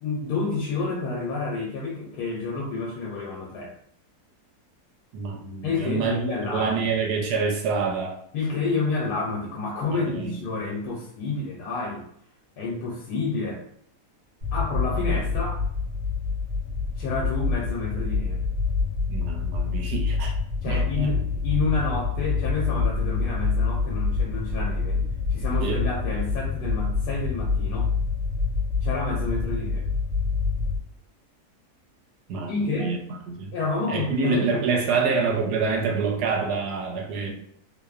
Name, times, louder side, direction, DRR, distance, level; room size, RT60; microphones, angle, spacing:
voice 1, 0.0-3.7 5.6-6.9 8.3-12.0 12.6-13.6 14.5-15.6 16.9-18.4 20.6-25.0 25.3-27.9 28.8-29.9 32.5-33.0 33.5-35.0 37.3-37.4, left 3 dB, 85° left, -3 dB, 1.2 m, -29 dB
voice 2, 5.1-6.3 6.5-8.2 9.9-10.4 19.1-20.3 20.7-21.1 25.6-25.8 32.3-33.0 33.3-33.5 33.9-37.3, right 5 dB, 80° right, 0 dB, 1.2 m, -26 dB
sound 1, 14.4-30.8, left 4 dB, 55° right, 1.2 m, -26 dB
2.9 x 2.0 x 2.3 m, 0.66 s
omnidirectional pair, 1.7 m